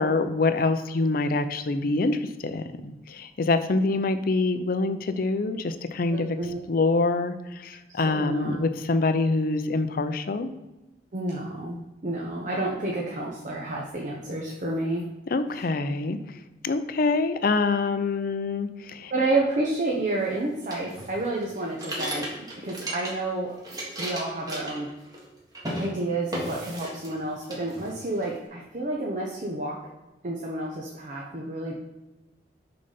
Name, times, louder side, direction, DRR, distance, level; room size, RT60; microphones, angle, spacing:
voice 1, 0.0-6.4 6.7-10.5 15.3-16.2 16.6-19.1, left 3 dB, 55° left, 10 dB, 0.5 m, -25 dB
voice 2, 6.1-6.6 7.9-8.6 11.1-15.1 19.1-22.3 22.6-23.5 24.0-24.9 25.8-29.8 30.2-31.7, right 2 dB, 45° right, -2 dB, 0.9 m, -30 dB
sound 1, 20.7-23.3 23.6-25.3 25.5-25.9 26.3-27.2 27.5-28.3, right 1 dB, 20° right, 1.6 m, -35 dB
6.6 x 4.0 x 5.5 m, 1.1 s
head